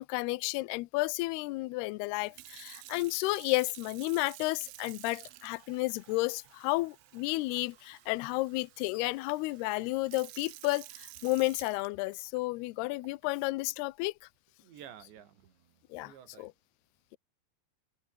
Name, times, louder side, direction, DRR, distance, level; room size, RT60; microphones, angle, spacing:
voice 1, 0.0-14.1 15.9-16.1 16.4-16.5, left 22 dB, 85° left, 2.3 m, -32 dB
Sink (filling or washing) / Fill (with liquid), 2.2-12.4 13.0-13.3, right 17 dB, 85° right, 3.6 m, -52 dB
voice 2, 14.6-16.5, right 9 dB, 70° right, 4.9 m, -52 dB
omnidirectional pair, 5.4 m